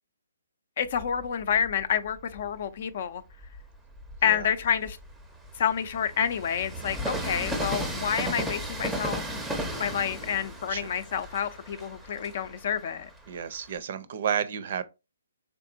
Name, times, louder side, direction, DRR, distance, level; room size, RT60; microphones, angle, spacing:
voice 1, 0.8-3.2 4.2-5.0 5.6-9.2 9.8-13.1, left 8 dB, 50° left, 0.5 m, -28 dB
Train, 0.9-2.6 3.2-13.8, right 1 dB, 5° right, 0.6 m, -36 dB
voice 2, 13.3-14.8, right 8 dB, 55° right, 0.5 m, -31 dB
3.5 x 2.9 x 2.6 m
hypercardioid pair, 145°, 0 cm